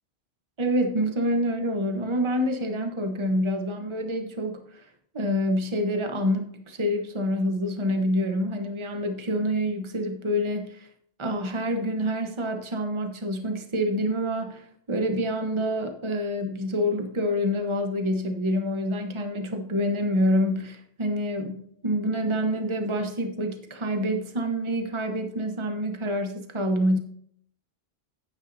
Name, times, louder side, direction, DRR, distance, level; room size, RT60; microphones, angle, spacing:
voice 1, 0.6-4.8 5.1-10.9 11.2-27.0, equal, 30° right, 5 dB, 1.1 m, -27 dB
11.0 x 9.0 x 2.7 m, 0.66 s
omnidirectional pair, 1.1 m